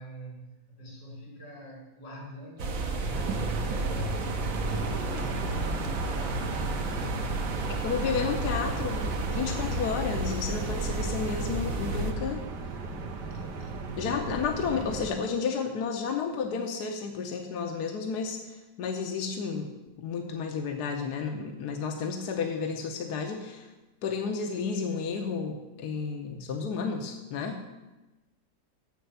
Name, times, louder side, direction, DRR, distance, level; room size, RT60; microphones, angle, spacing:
voice 1, 0.0-4.2 5.0-7.5, equal, 85° left, -3 dB, 4.2 m, -44 dB
sound 1, 2.6-12.1, right 2 dB, 55° right, 1.3 m, -32 dB
sound 2, 3.1-15.1, right 4 dB, 75° right, 1.6 m, -36 dB
voice 2, 4.6-5.5 7.7-12.4 13.4-13.5 14.0-23.7 24.0-27.6, left 5 dB, 65° left, 3 dB, 1.3 m, -32 dB
7.2 x 6.8 x 7.9 m, 1.1 s
omnidirectional pair, 1.9 m